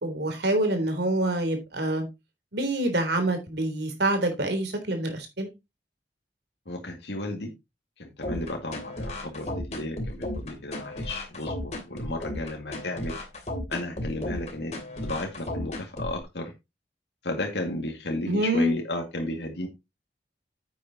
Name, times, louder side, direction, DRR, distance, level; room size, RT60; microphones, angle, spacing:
voice 1, 0.0-2.1 2.5-5.5 18.3-18.7, right 1 dB, 75° right, 3.5 m, -26 dB
voice 2, 6.7-7.5 8.0-13.2 13.7-14.7 15.0-16.5 17.2-19.7, left 1 dB, 70° left, 2.1 m, -33 dB
sound 1, 8.2-16.2, left 1 dB, 40° left, 2.9 m, -34 dB
9.8 x 8.5 x 2.9 m
head